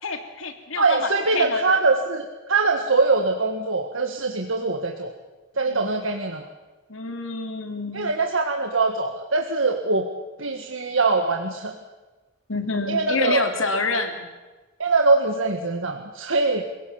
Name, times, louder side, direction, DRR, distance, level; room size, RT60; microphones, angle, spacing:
voice 1, 0.0-1.6 5.7-5.9 6.9-8.1 12.5-14.3, left 3 dB, 80° left, 5 dB, 3.1 m, -28 dB
voice 2, 0.8-5.1 5.6-6.5 7.9-10.1 10.4-11.8 12.9-13.5 14.8-16.6, right 3 dB, 80° right, 3 dB, 1.7 m, -22 dB
29.5 x 17.5 x 7.2 m, 1.2 s
head